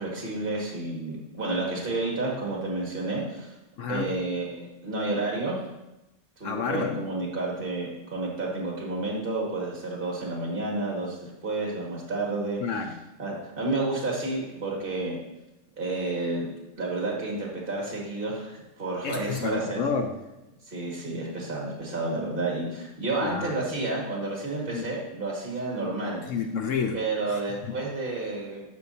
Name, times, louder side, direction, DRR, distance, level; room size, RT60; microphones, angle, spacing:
voice 1, 0.0-3.5 3.9-5.6 6.4-12.6 13.2-15.2 15.8-16.5 16.8-19.8 20.7-26.2 26.9-28.7, right 2 dB, 45° right, -2 dB, 2.1 m, -30 dB
voice 2, 3.8-4.2 6.4-7.1 12.6-13.0 19.0-20.2 23.2-23.5 24.7-24.9 26.3-27.0 27.3-27.8, left 5 dB, 75° left, 5 dB, 1.0 m, -30 dB
12.0 x 6.3 x 2.8 m, 0.95 s
omnidirectional pair, 1.4 m